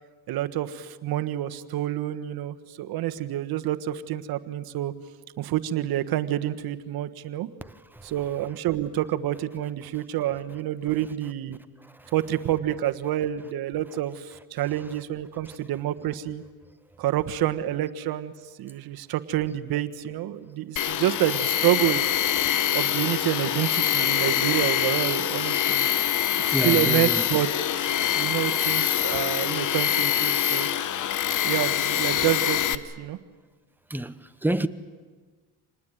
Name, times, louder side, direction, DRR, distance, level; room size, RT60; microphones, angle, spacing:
voice 1, 0.3-4.9 5.4-7.5 8.0-11.6 12.1-16.4 17.0-18.3 18.6-22.0 22.7-25.9 26.6-27.5 27.8-30.7 31.4-33.2, right 13 dB, 65° right, 1.4 m, -28 dB
voice 2, 7.6-8.1 9.9-10.0 11.8-12.1 14.6-15.0 15.5-15.6 26.5-27.2 33.9-34.7, right 1 dB, 5° right, 1.0 m, -30 dB
Tools, 20.8-32.8, left 10 dB, 50° left, 1.1 m, -24 dB
27.0 x 19.5 x 9.3 m
cardioid pair, 110°, 39 cm